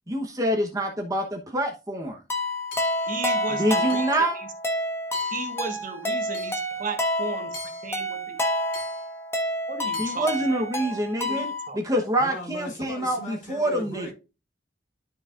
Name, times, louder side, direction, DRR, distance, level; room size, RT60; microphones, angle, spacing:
voice 1, 0.1-2.2 3.5-4.4 10.0-14.1, right 1 dB, 20° right, 1.0 m, -26 dB
sound 1, 2.3-11.7, left 1 dB, 15° left, 1.3 m, -29 dB
Hammer / Chink clink, 2.7-3.2 3.9-4.3 5.1-5.6 6.3-6.7 7.5-8.0 8.7-9.1 9.9-10.2, left 1 dB, 75° left, 2.8 m, -40 dB
voice 2, 2.9-4.5 5.2-7.6 7.8-8.4 9.7-11.8, right 3 dB, 45° right, 1.4 m, -35 dB
voice 3, 12.1-14.1, equal, 45° left, 4.8 m, -38 dB
12.5 x 4.8 x 2.5 m
head